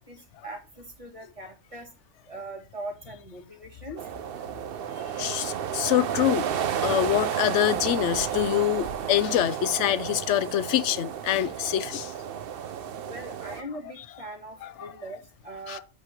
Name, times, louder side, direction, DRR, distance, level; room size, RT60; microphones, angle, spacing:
voice 1, 0.0-1.9 2.3-4.0 13.0-15.8, right 1 dB, 25° right, 2.0 m, -41 dB
sound 1, 4.0-13.6, right 9 dB, 55° right, 0.8 m, -32 dB
voice 2, 5.2-6.5 6.8-12.1 14.6-14.7 15.7-15.8, left 12 dB, 75° left, 0.9 m, -25 dB
8.3 x 3.4 x 5.9 m
omnidirectional pair, 1.2 m